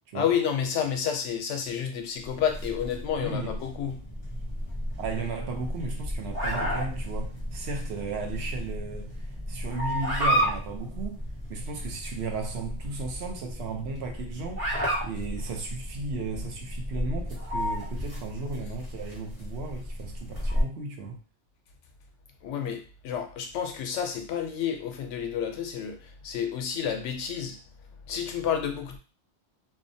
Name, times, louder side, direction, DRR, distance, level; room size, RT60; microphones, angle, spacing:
voice 1, 0.1-4.0 22.4-27.6 28.1-29.0, left 8 dB, 90° left, 0.9 m, -30 dB
sound 1, 2.2-20.6, equal, 35° right, 0.7 m, -32 dB
voice 2, 3.2-3.6 5.0-11.2 11.5-14.7 15.0-21.2, right 3 dB, 70° right, 0.8 m, -35 dB
2.7 x 2.1 x 2.6 m
omnidirectional pair, 1.2 m